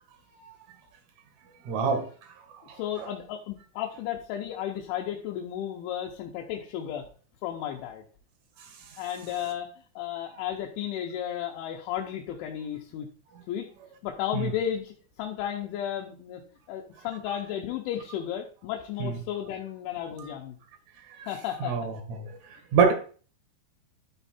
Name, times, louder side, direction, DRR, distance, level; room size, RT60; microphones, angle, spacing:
voice 1, 1.6-2.1 2.7-3.1 14.3-14.5 19.0-19.2 21.6-22.3 22.7-22.9, right 6 dB, 90° right, 6 dB, 1.6 m, -26 dB
voice 2, 2.8-7.1 7.4-8.0 9.0-13.1 13.5-13.7 14.0-16.4 16.7-20.6 21.3-21.8, left 10 dB, 85° left, 0 dB, 3.3 m, -33 dB
12.0 x 4.5 x 4.2 m, 0.41 s
omnidirectional pair, 5.3 m